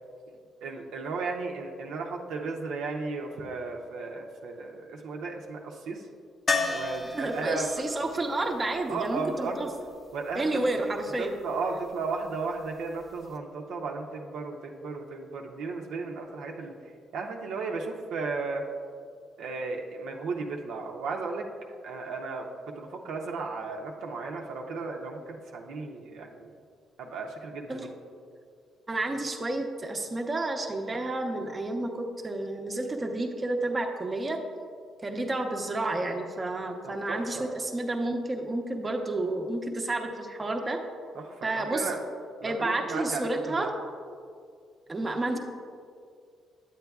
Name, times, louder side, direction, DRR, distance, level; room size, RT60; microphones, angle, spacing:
voice 1, 0.6-6.0 6.7-7.7 8.9-9.6 10.1-10.6 11.2-16.7 17.1-18.6 19.4-21.5 21.8-22.5 22.8-26.5 27.0-27.9 36.8-37.5 41.1-42.0 42.4-43.3 43.6-43.7, right 4 dB, 80° right, 1 dB, 0.7 m, -35 dB
sound 1, 6.5-10.4 13.0-13.1 13.4-13.5, left 3 dB, 35° left, 0.6 m, -33 dB
voice 2, 7.1-9.7 10.4-11.3 27.7-27.9 28.9-34.4 35.0-40.8 41.4-41.9 42.4-43.7 44.9-45.4, right 2 dB, 25° right, 2 dB, 0.7 m, -30 dB
9.3 x 8.0 x 2.3 m, 2.2 s
cardioid pair, 90°, 0 cm